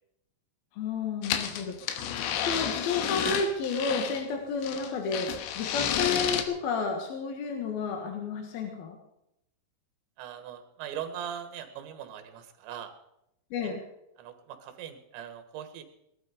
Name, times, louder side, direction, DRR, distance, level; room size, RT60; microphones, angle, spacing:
voice 1, 0.7-2.1 2.4-9.0 13.5-13.8, left 4 dB, 60° left, 3 dB, 3.1 m, -31 dB
sound 1, 1.2-4.2 4.6-6.4, left 9 dB, 85° left, 3.5 m, -31 dB
voice 2, 10.2-12.9 13.6-13.7 14.2-15.8, right 9 dB, 75° right, 8 dB, 3.7 m, -41 dB
19.0 x 12.5 x 5.1 m, 0.81 s
omnidirectional pair, 5.3 m